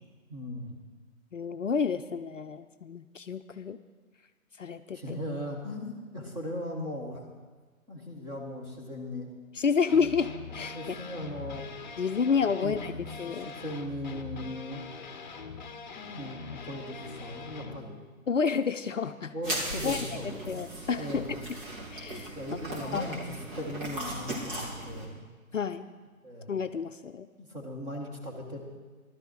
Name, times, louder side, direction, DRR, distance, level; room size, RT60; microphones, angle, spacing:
voice 1, 0.3-0.8 4.9-7.2 7.9-9.3 10.7-11.8 12.5-14.8 15.9-18.0 19.3-20.6 21.0-21.5 22.3-25.2 26.2-26.5 27.4-28.6, equal, 10° right, -3 dB, 1.5 m, -38 dB
voice 2, 1.3-3.8 4.6-5.0 9.6-11.0 12.0-12.9 13.2-13.5 18.3-19.3 19.8-20.0 20.5-21.4 21.9-22.3 22.8-23.1 25.5-25.9 26.5-27.3, left 6 dB, 60° left, 10 dB, 0.6 m, -29 dB
sound 1, 9.9-17.8, left 5 dB, 35° left, 1.0 m, -43 dB
sound 2, 19.4-25.1, right 1 dB, 35° right, 3.3 m, -37 dB
15.5 x 12.5 x 4.5 m, 1.4 s
figure-of-eight pair, 140°, 43 cm